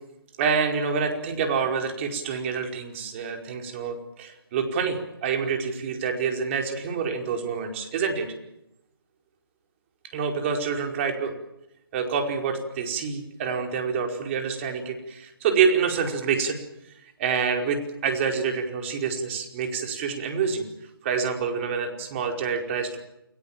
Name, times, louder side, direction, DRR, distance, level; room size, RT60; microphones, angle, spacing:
voice 1, 0.4-8.3 10.1-11.3 11.9-16.6 17.2-20.7 21.0-23.0, right 6 dB, 30° right, 4 dB, 4.9 m, -27 dB
29.5 x 20.5 x 7.5 m, 0.87 s
figure-of-eight pair, 150°, 12 cm